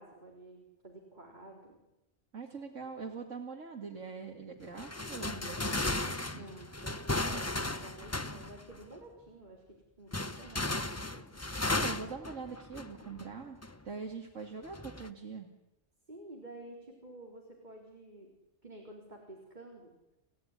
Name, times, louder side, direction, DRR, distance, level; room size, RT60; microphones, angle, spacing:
voice 1, 0.0-1.8 6.2-9.6 10.0-11.2 16.1-18.3 18.6-19.9, right 1 dB, 35° right, 0 dB, 4.3 m, -51 dB
voice 2, 2.3-6.5 11.7-13.6 13.8-15.5, right 5 dB, 90° right, 1 dB, 2.5 m, -43 dB
sound 1, 4.8-8.9 10.1-13.2 13.6-13.8 14.7-15.1, left 2 dB, 15° left, 0.8 m, -35 dB
29.0 x 17.0 x 10.0 m, 0.97 s
omnidirectional pair, 1.3 m